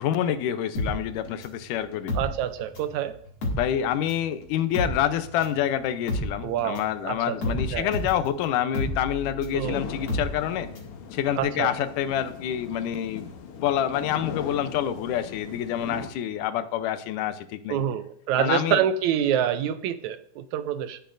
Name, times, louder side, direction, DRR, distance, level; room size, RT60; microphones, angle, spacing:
voice 1, 0.0-2.1 3.6-10.7 11.1-13.3 13.6-17.8 18.4-18.8, left 10 dB, 90° left, 11 dB, 2.3 m, -27 dB
sound 1, 0.8-3.0 3.3-11.0 11.3-11.4, left 1 dB, 45° left, 2.7 m, -31 dB
voice 2, 2.2-3.2 6.4-7.9 9.5-9.8 11.3-11.7 17.7-21.0, right 10 dB, 80° right, 11 dB, 1.8 m, -27 dB
sound 2, 9.6-16.1, left 6 dB, 65° left, 1.6 m, -39 dB
17.0 x 7.7 x 2.6 m, 0.63 s
omnidirectional pair, 3.6 m